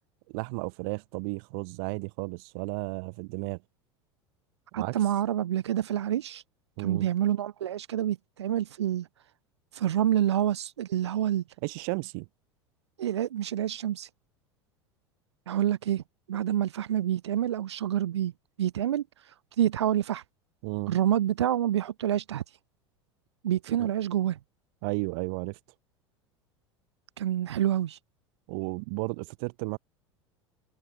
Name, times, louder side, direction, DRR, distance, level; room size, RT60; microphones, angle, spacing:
voice 1, 0.3-3.6 4.7-4.9 6.8-7.1 11.6-12.3 20.6-21.0 23.8-23.9 24.8-25.6 28.5-29.8, right 33 dB, 55° right, 1.5 m, -33 dB
voice 2, 4.7-6.4 6.8-9.1 9.7-11.4 13.0-14.1 15.5-16.0 16.3-18.3 18.6-19.0 19.6-20.2 20.9-22.4 23.4-24.4 27.2-28.0, right 11 dB, 70° right, 1.3 m, -27 dB
figure-of-eight pair, 80°, 15 cm